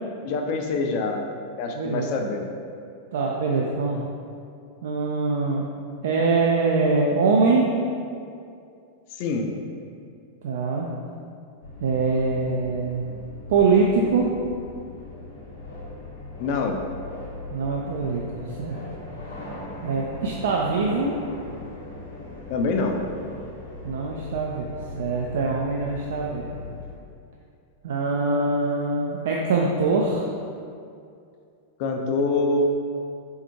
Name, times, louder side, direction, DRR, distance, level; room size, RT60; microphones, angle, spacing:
voice 1, 0.2-1.2 1.6-2.5 9.2-9.5 16.4-16.8 22.5-23.0 31.8-32.6, left 3 dB, 45° left, 3 dB, 0.4 m, -25 dB
voice 2, 1.8-2.1 3.1-4.0 4.8-5.7 6.0-7.7 10.4-10.9 11.8-13.0 13.5-14.3 17.5-18.2 18.6-18.8 19.8-21.1 23.8-26.5 27.8-30.3, right 4 dB, 60° right, -1 dB, 0.3 m, -23 dB
sound 1, 11.6-26.9, left 2 dB, 70° left, 0.9 m, -39 dB
4.0 x 3.5 x 3.1 m, 2.4 s
figure-of-eight pair, 90°, 0 cm